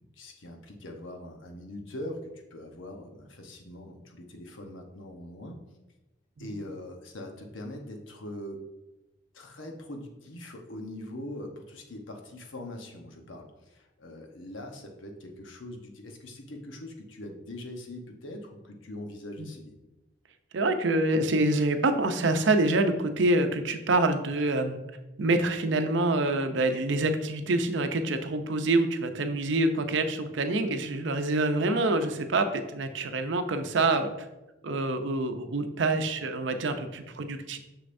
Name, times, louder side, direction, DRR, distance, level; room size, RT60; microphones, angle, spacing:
voice 1, 0.2-5.6 6.4-8.6 9.3-19.7, left 1 dB, 90° left, 3 dB, 1.0 m, -42 dB
voice 2, 20.5-24.8 25.2-34.3 34.6-37.6, right 2 dB, 75° right, 7 dB, 0.6 m, -26 dB
6.6 x 6.1 x 2.6 m, 1.0 s
head